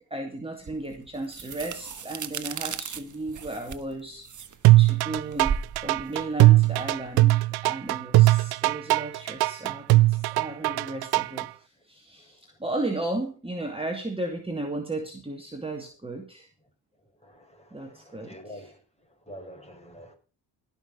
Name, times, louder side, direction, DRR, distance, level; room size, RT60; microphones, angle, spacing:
voice 1, 0.1-16.5 17.7-18.7, right 2 dB, 15° right, 2.5 m, -35 dB
sound 1, 0.7-7.4, right 7 dB, 40° right, 1.4 m, -36 dB
sound 2, 4.6-11.5, right 18 dB, 60° right, 0.5 m, -19 dB
voice 2, 17.2-18.8 19.3-20.1, equal, 15° left, 5.9 m, -46 dB
17.0 x 6.3 x 5.7 m
supercardioid pair, 55°, 43 cm